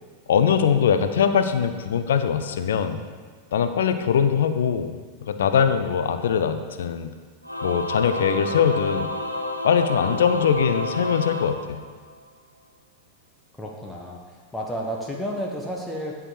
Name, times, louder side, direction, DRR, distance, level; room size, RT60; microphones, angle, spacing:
voice 1, 0.3-3.0 3.5-4.9 5.3-7.1 7.6-9.1 9.6-11.8, left 7 dB, 60° left, 10 dB, 0.6 m, -22 dB
Singing / Musical instrument, 7.4-12.3, left 1 dB, 90° right, 0.9 m, -30 dB
voice 2, 13.6-16.1, equal, 10° left, -1 dB, 1.0 m, -31 dB
11.0 x 4.9 x 4.8 m, 1.5 s
figure-of-eight pair, 90°, 0 cm